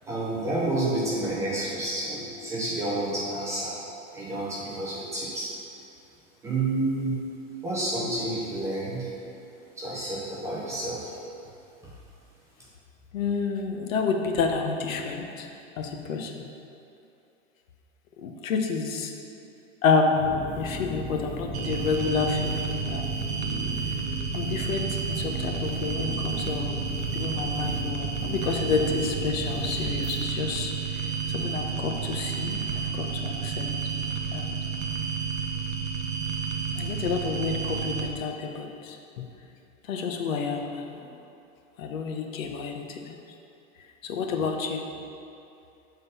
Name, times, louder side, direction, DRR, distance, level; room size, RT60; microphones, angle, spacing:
voice 1, 0.0-3.8 4.1-5.5 6.4-7.2 7.6-9.1 9.8-11.2, right 2 dB, 10° right, -7 dB, 0.4 m, -29 dB
voice 2, 13.1-15.5 15.8-16.3 18.2-19.1 19.8-23.1 24.3-26.7 27.1-30.7 31.3-32.6 32.9-33.7 34.3-34.5 36.8-39.2 39.9-40.8 41.8-43.1 44.0-44.8, left 5 dB, 85° left, 3 dB, 1.0 m, -29 dB
sound 1, 20.1-30.2, left 1 dB, 60° left, 1.4 m, -37 dB
sound 2, 21.5-38.1, right 6 dB, 55° right, 0.9 m, -31 dB
7.4 x 3.9 x 5.4 m, 2.6 s
supercardioid pair, 155°, 39 cm